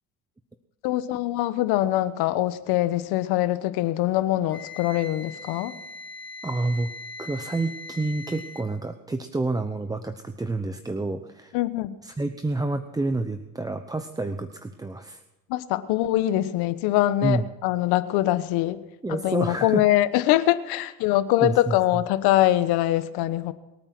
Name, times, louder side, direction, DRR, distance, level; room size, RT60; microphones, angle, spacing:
voice 1, 0.8-5.7 11.5-12.0 15.5-18.8 19.1-23.5, left 14 dB, 75° left, 13 dB, 1.2 m, -23 dB
Wind instrument woodwind instrument, 4.5-8.7, left 2 dB, 5° left, 5.2 m, -40 dB
voice 2, 6.4-6.9 7.2-11.5 12.0-15.2 17.2-17.5 19.0-19.8 21.4-21.8, right 2 dB, 10° right, 8 dB, 0.8 m, -28 dB
23.5 x 8.9 x 6.1 m, 1.0 s
cardioid pair, 115°, 38 cm